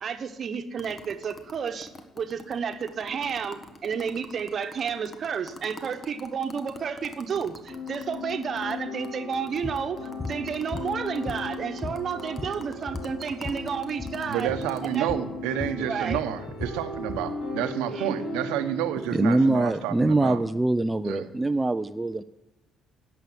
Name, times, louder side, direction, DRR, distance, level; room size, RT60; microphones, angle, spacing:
voice 1, 0.0-1.9 2.2-10.0 10.3-14.5 14.9-15.1 15.8-16.2 17.9-18.3, right 6 dB, 50° right, 9 dB, 1.1 m, -31 dB
sound 1, 0.8-8.7 9.0-9.1 9.3-15.0, left 2 dB, 35° left, 1.5 m, -44 dB
sound 2, 7.7-19.4, left 2 dB, 80° left, 2.6 m, -37 dB
sound 3, 9.6-9.8 10.2-10.4 10.7-11.6 11.8-13.6 13.9-14.2 14.5-14.7 15.1-15.3 15.6-17.3, left 3 dB, 15° left, 0.8 m, -36 dB
voice 2, 14.3-20.4 21.0-21.3, right 11 dB, 85° right, 10 dB, 0.8 m, -30 dB
voice 3, 19.1-22.2, right 2 dB, 15° right, 11 dB, 0.4 m, -23 dB
10.5 x 6.9 x 7.8 m, 1.0 s
supercardioid pair, 65°, 0 cm